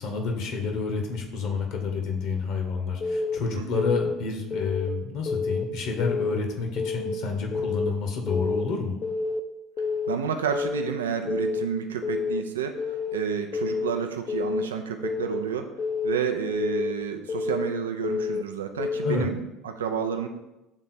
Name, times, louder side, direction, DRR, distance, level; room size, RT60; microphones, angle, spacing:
voice 1, 0.0-8.9 19.0-19.2, left 4 dB, 60° left, 3 dB, 0.9 m, -29 dB
Keyboard (musical) / Alarm, 3.0-3.4 3.8-4.1 4.5-4.9 5.3-5.6 6.0-6.4 6.8-7.1 7.5-7.9 8.3-8.6 9.0-9.4 9.8-10.2 10.5-10.9 11.3-11.7 12.0-12.4 12.8-13.2 13.5-13.9 14.3-14.7 15.0-15.4 15.8-16.2 16.5-16.9 17.3-17.7 18.0-18.4 18.8-19.2, left 4 dB, 35° left, 0.4 m, -28 dB
voice 2, 3.5-3.9 10.1-15.7 16.0-20.3, right 7 dB, 75° right, 6 dB, 0.4 m, -30 dB
6.1 x 3.7 x 4.1 m, 0.95 s
figure-of-eight pair, 60°, 0 cm